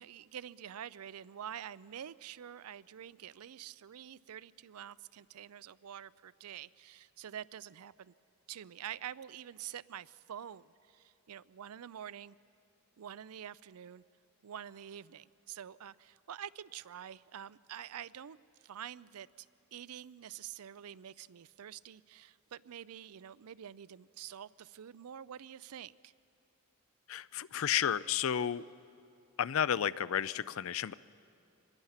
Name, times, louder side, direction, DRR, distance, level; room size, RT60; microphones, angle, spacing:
voice 1, 0.0-8.1 8.5-12.4 13.0-14.0 14.4-26.1, right 9 dB, 85° right, 18 dB, 0.4 m, -47 dB
voice 2, 27.1-28.7 29.4-30.9, left 9 dB, 65° left, 18 dB, 0.4 m, -32 dB
24.5 x 21.0 x 5.7 m, 2.7 s
head